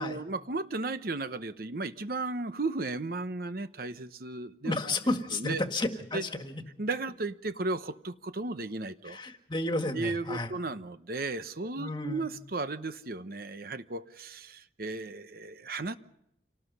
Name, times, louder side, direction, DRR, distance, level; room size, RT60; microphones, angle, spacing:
voice 1, 0.0-5.0 5.3-5.6 6.1-6.2 6.8-9.2 9.9-15.9, right 3 dB, 55° right, 11 dB, 0.9 m, -35 dB
voice 2, 4.6-6.6 9.0-10.5 11.8-12.4, left 2 dB, 25° left, 6 dB, 1.7 m, -32 dB
27.5 x 19.0 x 5.5 m, 0.77 s
head